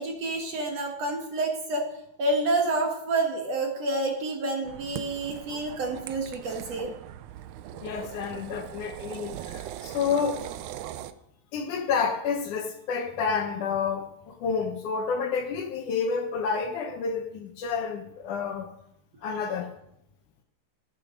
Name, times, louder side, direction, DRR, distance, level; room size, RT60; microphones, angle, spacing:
voice 1, 0.0-1.8 2.2-6.9, right 2 dB, 55° right, 2 dB, 2.4 m, -28 dB
sound 1, 4.7-11.1, right 12 dB, 80° right, 1.7 m, -40 dB
voice 2, 7.7-10.5 11.5-18.7 19.2-19.7, left 5 dB, 70° left, 5 dB, 2.2 m, -29 dB
13.5 x 8.8 x 6.2 m, 0.81 s
omnidirectional pair, 4.1 m